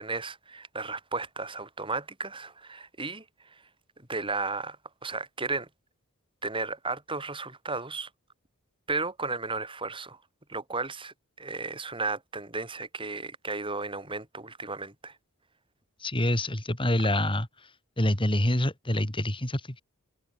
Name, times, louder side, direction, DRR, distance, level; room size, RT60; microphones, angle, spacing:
voice 1, 0.0-3.6 4.0-4.8 5.0-5.7 6.4-8.1 8.9-10.2 10.5-15.2, right 3 dB, 25° right, 6.7 m, -34 dB
voice 2, 16.0-17.5 18.0-19.8, left 1 dB, 25° left, 3.5 m, -26 dB
head